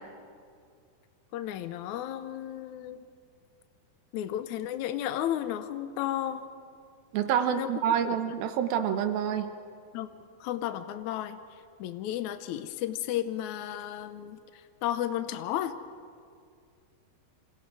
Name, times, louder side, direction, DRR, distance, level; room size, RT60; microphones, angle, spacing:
voice 1, 1.3-3.0 4.1-6.5 7.4-7.7 8.0-8.2 9.9-10.1 10.4-11.4 11.8-14.4 14.8-15.7, left 11 dB, 85° left, 10 dB, 1.6 m, -33 dB
voice 2, 7.1-9.6, right 9 dB, 75° right, 9 dB, 2.7 m, -27 dB
28.0 x 27.0 x 4.9 m, 2.2 s
omnidirectional pair, 4.6 m